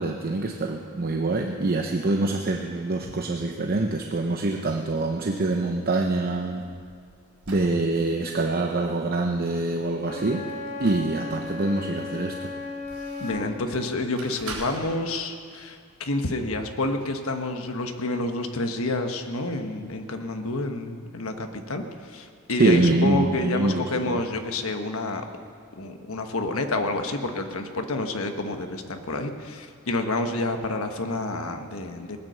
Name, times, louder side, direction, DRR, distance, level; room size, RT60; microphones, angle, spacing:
voice 1, 0.0-6.7 7.5-10.5 10.8-12.4 22.6-24.2, right 2 dB, 45° right, 3 dB, 0.7 m, -25 dB
sound 1, 6.6-7.7 10.5-11.5 12.1-13.6 14.2-14.8, right 3 dB, 80° right, 3.6 m, -42 dB
Wind instrument woodwind instrument, 10.0-13.6, left 3 dB, 50° left, 2.2 m, -35 dB
voice 2, 13.2-25.2 25.8-32.2, left 2 dB, 70° left, 6 dB, 1.2 m, -29 dB
19.5 x 9.4 x 6.8 m, 2.2 s
head